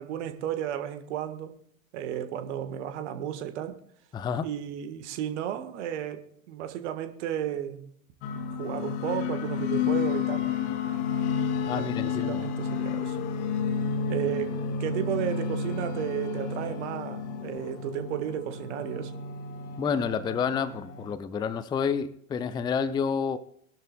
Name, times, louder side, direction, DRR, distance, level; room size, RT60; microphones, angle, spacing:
voice 1, 0.0-1.5 1.9-3.8 4.4-7.8 8.6-10.4 11.6-13.2 14.1-19.1, right 10 dB, 55° right, 1.6 m, -33 dB
voice 2, 4.1-4.5 11.7-12.5 19.8-23.4, left 6 dB, 10° left, 0.5 m, -29 dB
sound 1, 8.2-21.1, left 6 dB, 45° left, 1.4 m, -31 dB
22.0 x 12.0 x 2.3 m
figure-of-eight pair, 85°, 41 cm